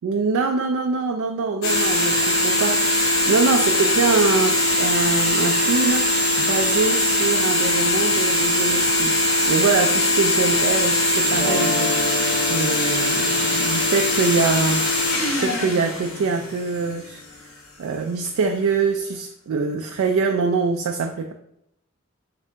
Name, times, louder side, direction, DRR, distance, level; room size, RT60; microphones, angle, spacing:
voice 1, 0.0-6.1 6.4-9.2 9.5-14.9 15.3-17.2 17.8-21.3, right 4 dB, 85° right, 4 dB, 0.3 m, -24 dB
sound 1, 1.6-16.8, left 1 dB, 75° left, 0.7 m, -21 dB
sound 2, 11.2-17.3, left 1 dB, 20° left, 0.9 m, -33 dB
3.3 x 3.2 x 2.8 m, 0.76 s
head